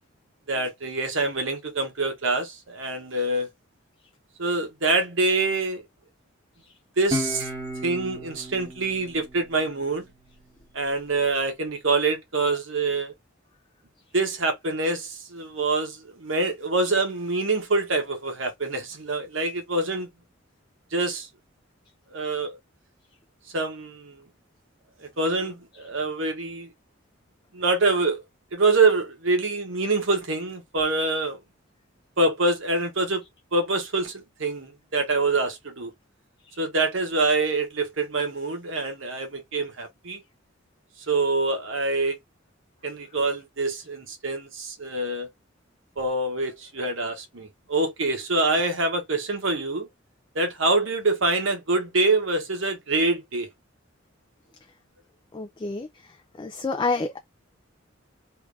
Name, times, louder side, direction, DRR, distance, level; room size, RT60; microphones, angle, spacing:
voice 1, 0.5-3.5 4.4-5.8 7.0-7.5 7.8-10.1 10.7-13.1 14.1-20.1 20.9-21.3 22.1-22.6 23.5-24.2 25.0-26.7 27.5-28.2 28.5-31.4 32.2-33.2 33.5-35.9 36.6-40.2 41.1-42.2 42.8-45.3 46.0-49.9 50.3-53.5, right 3 dB, 70° right, 1.1 m, -25 dB
Guitar, 7.1-10.3, left 1 dB, 25° right, 2.1 m, -34 dB
voice 2, 55.3-55.9 56.4-57.2, left 3 dB, 25° left, 0.4 m, -28 dB
3.4 x 2.5 x 3.3 m
head